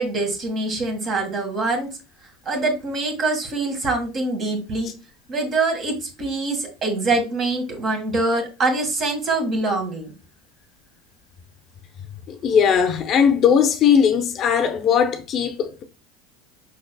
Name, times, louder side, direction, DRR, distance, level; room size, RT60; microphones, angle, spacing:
voice 1, 0.0-1.9 2.4-4.9 5.3-10.1, right 2 dB, 40° right, 1.8 m, -24 dB
voice 2, 12.3-15.8, left 7 dB, 45° left, 0.7 m, -19 dB
5.5 x 3.9 x 2.2 m
supercardioid pair, 100°, 0 cm